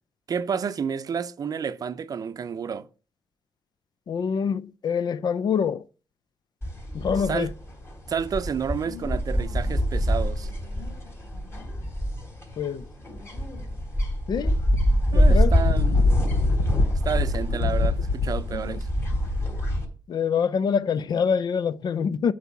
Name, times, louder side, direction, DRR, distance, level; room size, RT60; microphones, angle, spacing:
voice 1, 0.3-2.9 7.2-7.5 8.1-10.5 15.1-16.0 17.0-18.9, right 7 dB, 50° right, 0.6 m, -30 dB
voice 2, 4.1-5.8 6.9-7.5 12.6-12.8 14.3-14.6 15.1-15.5 18.5-18.7 20.1-22.3, left 6 dB, 60° left, 0.5 m, -25 dB
sound 1, 6.6-19.8, equal, 30° left, 3.4 m, -26 dB
Wind, 14.5-19.8, left 3 dB, 75° left, 1.2 m, -26 dB
8.3 x 4.8 x 7.1 m
cardioid pair, 110°, 8 cm